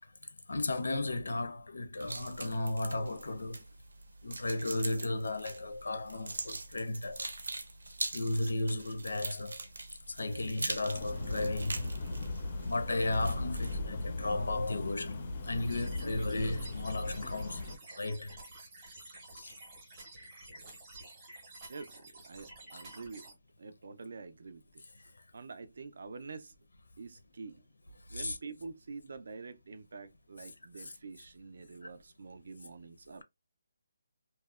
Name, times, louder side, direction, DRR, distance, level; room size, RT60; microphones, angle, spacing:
voice 1, 0.5-3.6 4.2-7.3 8.1-9.6 10.1-11.8 12.6-17.6 17.9-18.4 19.3-19.5 28.1-28.4 30.8-30.9 31.8-31.9, left 2 dB, 85° left, 0.5 m, -34 dB
sound 1, 2.0-13.8, right 2 dB, 85° right, 0.6 m, -43 dB
sound 2, 10.9-17.8, left 2 dB, 25° left, 0.4 m, -37 dB
sound 3, 15.5-23.3, right 2 dB, 15° right, 0.7 m, -51 dB
voice 2, 21.7-23.3 23.6-24.8 25.3-26.5 27.0-27.6 28.1-33.2, right 4 dB, 50° right, 0.4 m, -47 dB
2.7 x 2.0 x 2.3 m
hypercardioid pair, 180°, 0 cm